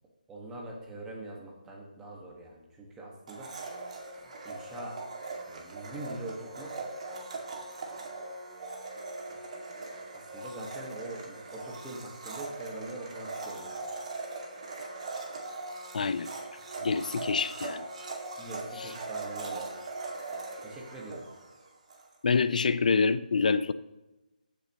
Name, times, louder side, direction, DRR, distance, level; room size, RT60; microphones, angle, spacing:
voice 1, 0.3-3.5 4.4-5.0 5.5-6.9 9.3-9.4 10.1-14.0 18.4-19.6 20.6-21.2, right 1 dB, 10° right, -2 dB, 1.5 m, -43 dB
Domestic sounds home sounds, 3.3-22.1, right 3 dB, 50° right, 2.1 m, -40 dB
voice 2, 15.9-16.3 16.8-17.8 18.8-18.9 22.2-23.7, left 5 dB, 60° left, 14 dB, 0.5 m, -26 dB
15.0 x 7.1 x 3.0 m, 1.0 s
hypercardioid pair, 165°, 5 cm